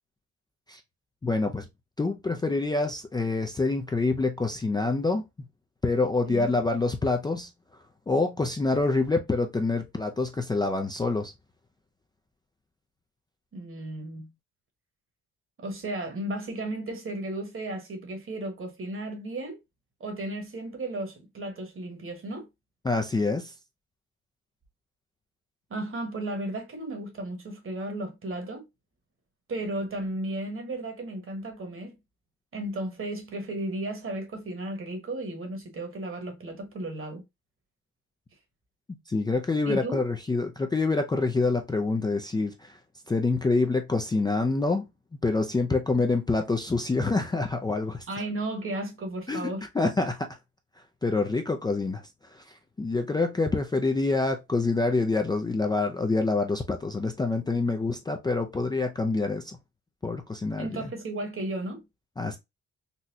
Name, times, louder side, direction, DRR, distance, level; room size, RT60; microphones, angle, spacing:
voice 1, 1.2-1.7 2.0-5.2 5.8-7.5 8.1-11.3 22.8-23.5 39.1-42.8 43.1-44.8 45.2-48.1 49.3-50.4 51.0-59.6 60.0-60.9 62.2-62.4, left 3 dB, 15° left, 0.4 m, -26 dB
voice 2, 13.5-14.3 15.6-19.6 20.0-22.5 25.7-28.6 29.5-31.9 32.5-37.2 39.7-40.0 48.1-49.6 60.6-61.8, right 1 dB, 45° right, 1.3 m, -34 dB
4.0 x 2.2 x 2.7 m
cardioid pair, 90°, 30 cm